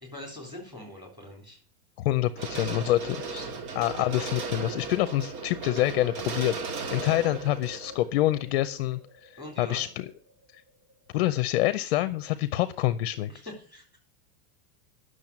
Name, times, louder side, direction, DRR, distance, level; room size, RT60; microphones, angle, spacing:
voice 1, 0.1-1.6 2.4-3.6 9.4-9.9 13.3-14.0, left 1 dB, 10° right, 0 dB, 3.6 m, -43 dB
voice 2, 2.0-3.0 3.8-6.5 6.9-9.3 9.6-10.0 11.1-13.3, left 15 dB, 45° left, 13 dB, 0.5 m, -26 dB
sound 1, 2.4-9.5 9.8-9.9, right 4 dB, 75° right, 1.8 m, -36 dB
10.5 x 6.4 x 8.5 m, 0.43 s
supercardioid pair, 175°, 46 cm